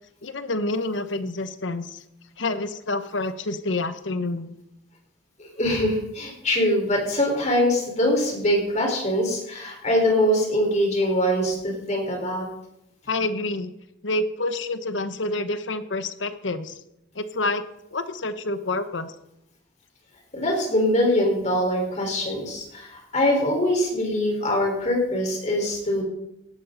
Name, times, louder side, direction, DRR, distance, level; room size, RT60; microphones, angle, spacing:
voice 1, 0.2-2.0 2.4-4.5 13.1-13.7 14.0-16.8 17.1-17.6 17.9-19.1, left 2 dB, 85° left, 11 dB, 1.0 m, -28 dB
voice 2, 5.4-12.5 20.3-26.0, left 1 dB, 40° left, 0 dB, 4.4 m, -23 dB
17.5 x 12.5 x 4.0 m, 0.82 s
head